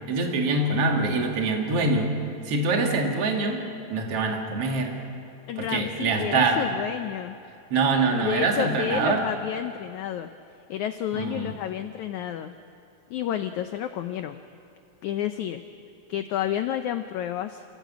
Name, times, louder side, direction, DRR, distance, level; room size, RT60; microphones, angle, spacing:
voice 1, 0.1-2.1 2.5-3.6 3.9-4.9 5.6-6.6 7.7-9.2 11.1-11.5, right 3 dB, 45° right, 2 dB, 2.8 m, -24 dB
voice 2, 5.5-7.4 8.1-10.3 10.7-12.5 13.1-14.4 15.0-15.6 16.1-17.6, left 10 dB, 90° left, 8 dB, 1.7 m, -30 dB
28.0 x 17.0 x 8.3 m, 2.7 s
omnidirectional pair, 4.3 m